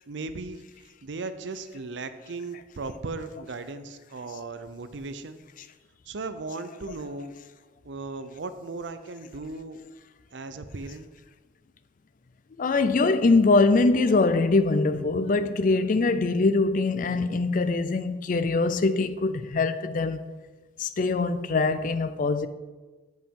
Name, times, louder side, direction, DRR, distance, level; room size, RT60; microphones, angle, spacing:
voice 1, 0.1-0.6 1.0-5.4 6.1-7.3 7.8-9.8 10.3-11.1, right 3 dB, 70° right, 0.6 m, -37 dB
voice 2, 12.6-20.2 20.8-22.5, left 3 dB, 45° left, 0.4 m, -23 dB
8.5 x 7.4 x 3.7 m
head